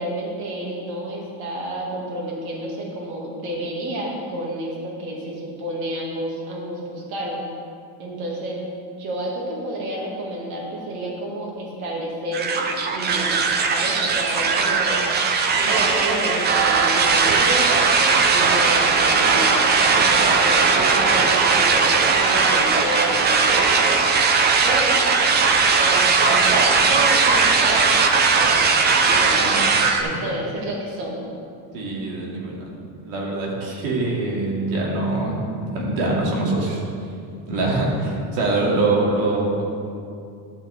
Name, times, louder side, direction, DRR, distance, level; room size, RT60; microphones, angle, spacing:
voice 1, 0.0-7.4 8.0-8.6 9.0-15.0 15.6-19.5 19.9-24.0 24.6-25.1 25.8-27.9 28.3-29.4 29.8-31.2, right 1 dB, 50° right, -3 dB, 2.1 m, -30 dB
sound 1, 12.3-30.0, right 4 dB, 25° right, 0.4 m, -18 dB
voice 2, 29.4-29.8 31.7-32.7 33.0-36.8 37.5-39.7, right 2 dB, 80° right, -3 dB, 2.6 m, -24 dB
12.0 x 7.5 x 3.5 m, 2.4 s
cardioid pair, 165°, 48 cm